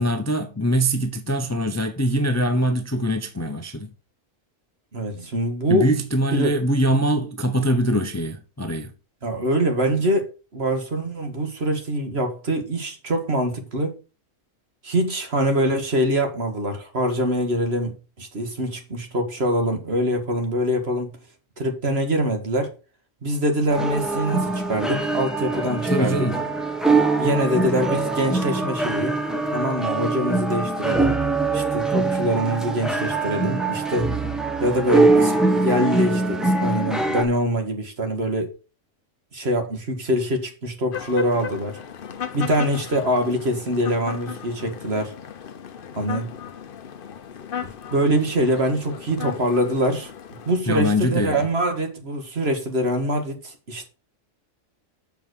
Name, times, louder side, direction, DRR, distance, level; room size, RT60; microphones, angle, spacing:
voice 1, 0.0-3.9 5.7-8.9 25.6-26.4 50.7-51.4, equal, 15° left, 0.7 m, -23 dB
voice 2, 4.9-5.9 6.3-6.6 9.2-14.0 14.8-21.1 21.6-22.7 23.2-26.3 27.2-29.2 29.5-31.2 31.5-34.1 34.6-38.5 39.3-41.8 42.3-45.1 46.0-46.3 47.9-50.1 50.5-53.9, right 1 dB, 50° right, 2.0 m, -24 dB
sound 1, 23.7-37.2, right 3 dB, ahead, 1.1 m, -23 dB
sound 2, 40.9-50.6, left 8 dB, 50° left, 0.9 m, -36 dB
7.1 x 5.6 x 6.4 m
omnidirectional pair, 1.4 m